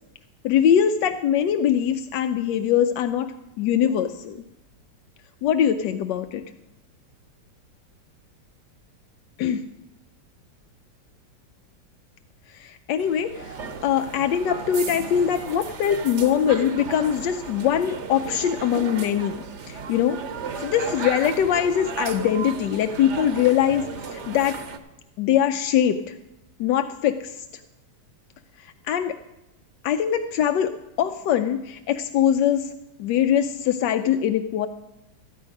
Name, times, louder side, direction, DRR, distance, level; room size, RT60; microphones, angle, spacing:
voice 1, 0.4-4.4 5.4-6.4 9.4-9.6 12.5-20.2 20.6-24.6 25.2-26.2 26.6-27.5 28.6-29.2 29.8-32.7 33.0-34.7, left 9 dB, 85° left, 8 dB, 1.2 m, -22 dB
sound 1, 13.0-24.8, right 5 dB, 50° right, 1.0 m, -35 dB
13.5 x 9.8 x 5.2 m, 0.98 s
omnidirectional pair, 1.9 m